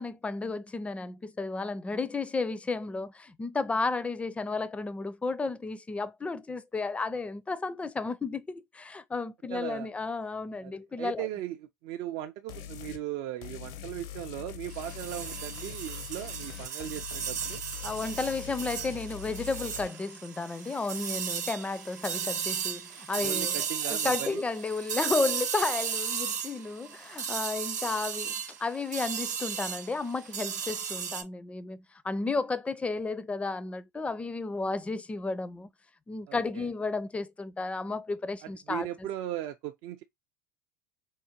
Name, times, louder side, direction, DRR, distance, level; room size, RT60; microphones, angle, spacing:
voice 1, 0.0-11.3 17.8-28.3 28.6-35.7 36.1-38.9, left 3 dB, 15° left, 0.4 m, -33 dB
voice 2, 9.5-9.9 10.6-10.7 11.0-11.6 11.8-17.6 23.2-24.4 36.3-36.7 38.4-40.0, right 12 dB, 60° right, 0.4 m, -38 dB
sound 1, 12.5-13.0 13.4-19.9, left 11 dB, 60° left, 0.6 m, -43 dB
sound 2, 14.7-31.2, right 7 dB, 90° right, 0.8 m, -35 dB
4.5 x 2.2 x 2.8 m
hypercardioid pair, 95°, 9 cm